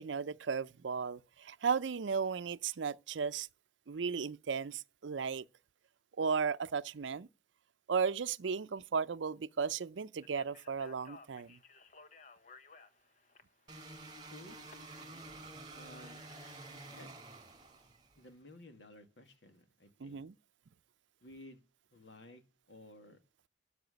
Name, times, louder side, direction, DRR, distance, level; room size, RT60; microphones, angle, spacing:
voice 1, 0.0-3.5 3.9-5.4 6.2-7.3 7.9-11.6 20.0-20.3, right 6 dB, 85° right, 0.5 m, -35 dB
Speech, 10.2-14.7, left 4 dB, 40° left, 0.9 m, -58 dB
sound 1, 13.7-18.2, right 2 dB, 25° right, 3.6 m, -50 dB
voice 2, 15.7-16.3 16.9-17.1 18.2-20.2 21.2-21.6 21.9-22.4 22.7-23.2, left 1 dB, 80° left, 2.1 m, -55 dB
13.0 x 4.8 x 8.2 m
head